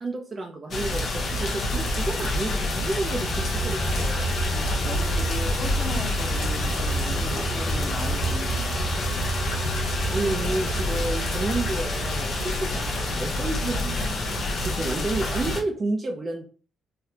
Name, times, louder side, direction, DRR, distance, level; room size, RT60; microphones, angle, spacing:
voice 1, 0.0-4.4 7.2-7.5 10.1-16.5, right 2 dB, 35° right, 2 dB, 0.5 m, -31 dB
sound 1, 0.7-15.6, left 1 dB, 60° left, 0.7 m, -27 dB
sound 2, 3.3-14.1, right 2 dB, 10° left, 0.9 m, -32 dB
voice 2, 4.4-9.1 14.7-15.1, left 2 dB, 40° left, 1 dB, 1.1 m, -37 dB
Drum, 6.4-8.4, right 4 dB, 80° right, 0.6 m, -48 dB
3.3 x 2.3 x 2.7 m, 0.40 s
cardioid pair, 90°, 0 cm